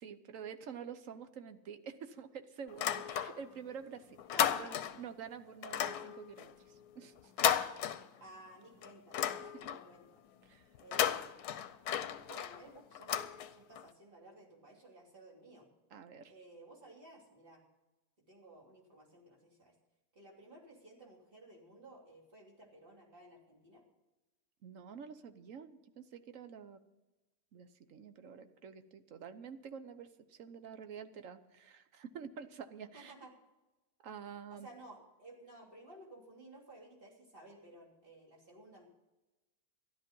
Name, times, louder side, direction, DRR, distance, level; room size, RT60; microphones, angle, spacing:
voice 1, 0.0-4.2 4.5-7.7 9.5-9.7 10.4-10.7 15.9-16.3 24.6-26.8 27.5-33.1 34.0-34.7, right 7 dB, 55° right, 10 dB, 1.2 m, -48 dB
sound 1, 2.7-3.7 4.0-5.1 5.6-8.5 8.8-10.0 10.7-13.9, left 9 dB, 75° left, 1.2 m, -35 dB
voice 2, 4.3-4.8 8.2-10.2 10.8-11.4 12.2-15.7 16.3-17.6 18.3-19.7 20.1-23.8 32.9-33.3 34.5-38.9, right 2 dB, 35° right, -1 dB, 3.2 m, -56 dB
13.0 x 11.5 x 5.4 m, 1.1 s
omnidirectional pair, 1.8 m